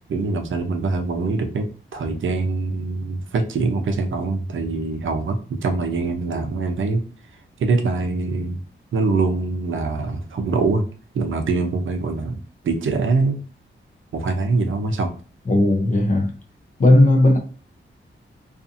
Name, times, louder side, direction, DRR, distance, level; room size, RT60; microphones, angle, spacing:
voice 1, 0.1-1.7 1.9-7.0 7.6-8.6 8.9-10.8 11.1-12.4 12.6-13.4 14.1-15.1, right 3 dB, 70° right, 0.6 m, -23 dB
voice 2, 15.5-16.3 16.8-17.4, left 1 dB, 40° left, 0.6 m, -15 dB
2.6 x 2.4 x 2.5 m
wide cardioid pair, 120°, 21 cm